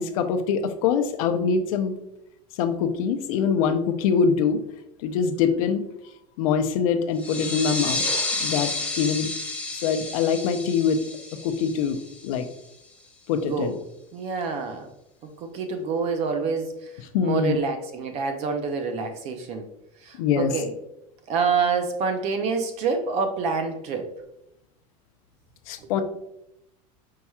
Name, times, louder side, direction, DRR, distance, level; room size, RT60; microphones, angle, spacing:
voice 1, 0.0-1.9 2.6-4.6 5.0-5.9 6.4-8.0 8.4-8.7 9.0-9.3 9.7-11.0 11.3-12.5 13.3-13.8 17.1-17.6 20.2-20.5 25.7-26.0, left 6 dB, 75° left, 8 dB, 0.6 m, -24 dB
sound 1, 7.2-12.5, left 2 dB, 5° left, 0.8 m, -30 dB
voice 2, 13.5-13.8 14.1-14.9 15.4-16.9 17.2-19.6 20.0-20.7 21.3-24.1 25.8-25.9, right 5 dB, 35° right, 6 dB, 0.5 m, -27 dB
4.7 x 4.2 x 2.3 m, 0.82 s
supercardioid pair, 155°, 18 cm